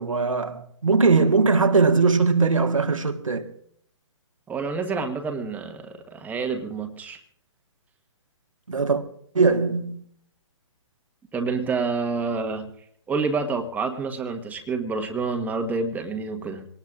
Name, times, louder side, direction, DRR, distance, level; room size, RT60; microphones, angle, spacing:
voice 1, 0.0-3.5 8.7-9.0 9.3-10.0, right 4 dB, 85° right, 1.6 m, -20 dB
voice 2, 4.5-7.2 11.3-12.7 13.1-16.7, right 4 dB, 10° right, 1.3 m, -28 dB
24.5 x 19.0 x 2.5 m
figure-of-eight pair, 130°, 17 cm